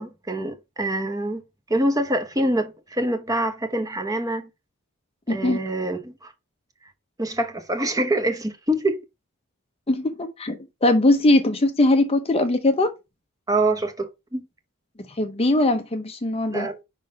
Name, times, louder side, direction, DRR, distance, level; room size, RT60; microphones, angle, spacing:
voice 1, 0.0-1.4 1.7-4.5 5.3-6.3 7.2-9.0 13.5-14.4 16.5-16.8, right 1 dB, 15° right, 0.9 m, -25 dB
voice 2, 5.3-5.6 9.9-12.9 15.1-16.7, left 2 dB, 25° left, 0.6 m, -21 dB
5.3 x 3.7 x 5.1 m
head